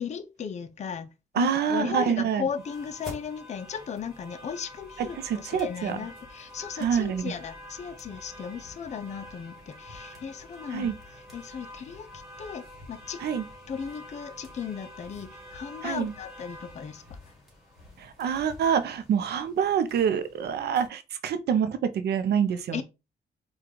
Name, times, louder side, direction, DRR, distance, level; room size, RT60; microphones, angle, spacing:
voice 1, 0.0-13.2 13.7-17.3 22.7-22.8, left 7 dB, 45° left, 0.5 m, -36 dB
voice 2, 1.3-2.5 5.0-6.0 6.8-7.3 10.7-10.9 13.2-13.4 15.8-16.1 18.0-22.8, right 8 dB, 80° right, 0.6 m, -26 dB
sound 1, 2.5-20.9, left 1 dB, ahead, 2.1 m, -47 dB
4.5 x 2.3 x 3.8 m
cardioid pair, 80°, 17 cm